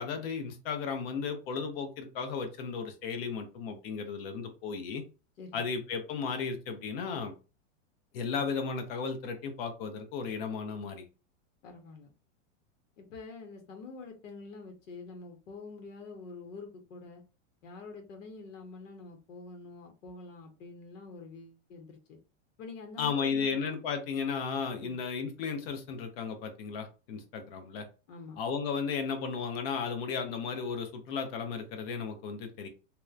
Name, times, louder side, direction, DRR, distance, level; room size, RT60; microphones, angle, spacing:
voice 1, 0.0-5.0 5.5-7.3 8.1-11.0 23.0-27.9 28.4-32.7, left 5 dB, 50° left, 0.7 m, -34 dB
voice 2, 5.4-5.7 11.6-12.1 13.0-17.2 17.6-22.2 22.6-23.5 24.8-25.0 28.1-28.4, left 3 dB, 90° left, 0.9 m, -46 dB
2.9 x 2.1 x 2.3 m
supercardioid pair, 160°, 37 cm